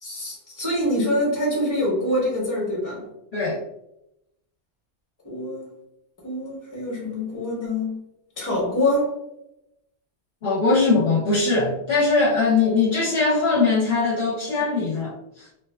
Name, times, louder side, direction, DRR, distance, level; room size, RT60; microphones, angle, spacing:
voice 1, 0.0-3.0 5.2-5.7 6.2-7.9 8.4-9.2, left 1 dB, 15° left, -4 dB, 0.8 m, -25 dB
voice 2, 10.4-15.5, left 3 dB, 60° left, -5 dB, 0.8 m, -21 dB
2.7 x 2.2 x 2.2 m, 0.84 s
omnidirectional pair, 1.3 m